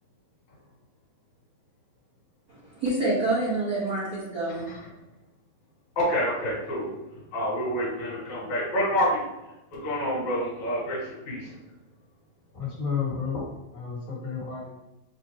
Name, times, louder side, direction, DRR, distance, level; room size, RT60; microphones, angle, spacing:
voice 1, 2.5-4.6, right 2 dB, 70° right, -10 dB, 0.9 m, -27 dB
voice 2, 6.0-6.9 7.3-9.2 9.7-11.5, equal, 60° left, -7 dB, 2.7 m, -27 dB
voice 3, 12.5-13.4 13.7-14.7, left 6 dB, 45° left, -9 dB, 1.8 m, -31 dB
7.1 x 2.4 x 2.9 m, 0.96 s
omnidirectional pair, 4.1 m